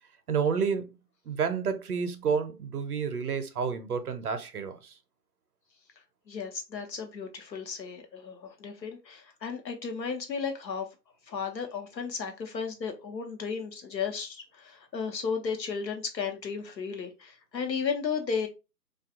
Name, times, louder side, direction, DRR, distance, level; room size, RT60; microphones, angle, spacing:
voice 1, 0.3-1.0 1.3-4.9, right 6 dB, 65° right, 0.6 m, -30 dB
voice 2, 6.3-10.9 11.3-18.5, left 6 dB, 80° left, 0.9 m, -34 dB
2.5 x 2.3 x 2.7 m
figure-of-eight pair, 160°, 50 cm